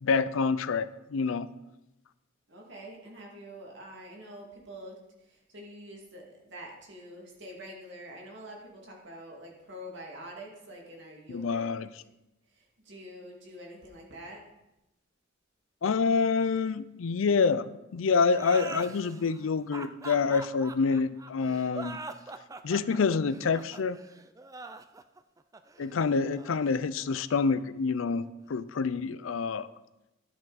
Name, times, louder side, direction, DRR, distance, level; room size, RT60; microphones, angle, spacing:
voice 1, 0.0-1.5 11.3-11.9 15.8-17.7 17.9-22.0 22.6-24.0 25.8-29.7, left 5 dB, 85° left, 15 dB, 0.5 m, -27 dB
voice 2, 2.5-5.0 5.3-11.7 12.5-14.4, equal, 65° right, -1 dB, 2.4 m, -46 dB
sound 1, 18.3-27.6, right 3 dB, 15° right, 0.4 m, -43 dB
12.5 x 6.7 x 4.1 m, 0.95 s
head